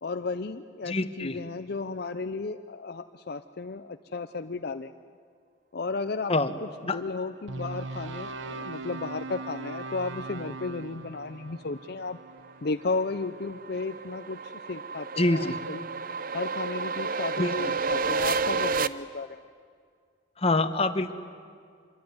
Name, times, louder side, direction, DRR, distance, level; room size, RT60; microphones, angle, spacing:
voice 1, 0.0-4.9 5.7-6.3 6.6-12.2 12.6-15.8 16.3-19.4, left 3 dB, 55° left, 8 dB, 0.6 m, -34 dB
voice 2, 0.9-1.3 6.3-6.5 6.9-7.0 15.2-15.5 17.4-17.5 20.4-21.1, left 2 dB, 30° left, 9 dB, 1.2 m, -25 dB
sound 1, 7.5-13.7, right 3 dB, 85° right, 1.0 m, -40 dB
sound 2, 12.3-18.9, right 4 dB, 50° right, 0.7 m, -31 dB
26.0 x 23.0 x 9.6 m, 2.1 s
head